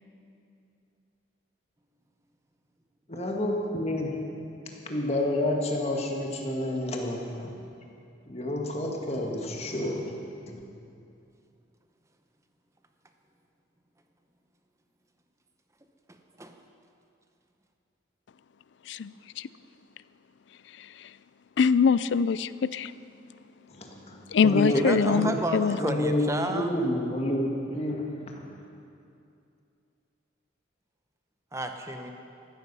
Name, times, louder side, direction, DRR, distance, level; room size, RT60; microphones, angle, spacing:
voice 1, 3.1-4.3 4.9-7.5 8.3-10.1 10.5-10.6 23.7-24.8 25.1-25.3 25.8-28.4, left 1 dB, 30° left, 1 dB, 1.7 m, -29 dB
voice 2, 16.1-16.5 24.7-26.7 31.5-32.1, right 1 dB, 15° right, 5 dB, 0.8 m, -32 dB
voice 3, 21.6-22.9 24.3-25.8, left 6 dB, 65° left, 17 dB, 0.4 m, -23 dB
14.5 x 13.5 x 5.5 m, 2.6 s
head